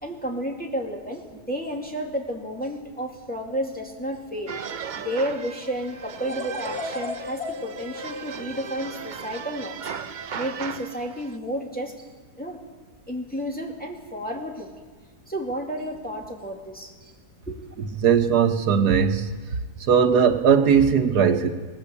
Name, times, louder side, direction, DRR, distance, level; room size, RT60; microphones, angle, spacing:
voice 1, 0.0-4.5 5.0-9.8 10.3-12.1 12.4-12.6 13.1-14.7 15.3-17.1 17.5-17.6, equal, 5° left, -1 dB, 2.4 m, -31 dB
sound 1, 4.5-11.4, right 7 dB, 55° right, 0.5 m, -37 dB
sound 2, 6.2-9.4, left 3 dB, 65° left, 2.1 m, -35 dB
voice 2, 18.0-19.3 19.8-21.5, right 7 dB, 75° right, 6 dB, 1.6 m, -19 dB
20.0 x 19.0 x 8.3 m, 1.4 s
omnidirectional pair, 1.7 m